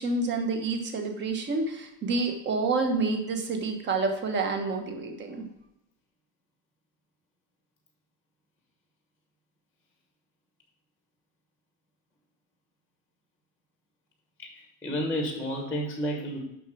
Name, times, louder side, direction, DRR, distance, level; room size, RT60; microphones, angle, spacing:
voice 1, 0.0-5.4, right 3 dB, 25° right, 5 dB, 1.2 m, -28 dB
voice 2, 14.4-16.4, equal, 5° left, 2 dB, 1.1 m, -31 dB
6.9 x 5.9 x 6.2 m, 0.83 s
cardioid pair, 165°, 40 cm